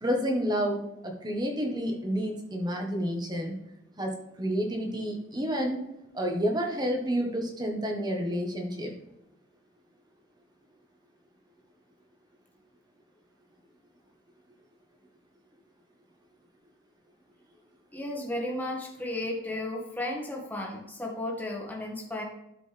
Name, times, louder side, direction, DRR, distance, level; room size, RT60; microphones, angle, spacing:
voice 1, 0.0-3.5 4.0-5.8 6.1-8.9, equal, 20° right, 1 dB, 1.4 m, -30 dB
voice 2, 17.9-22.2, left 1 dB, 10° left, -1 dB, 1.6 m, -34 dB
12.0 x 5.1 x 3.5 m, 0.85 s
head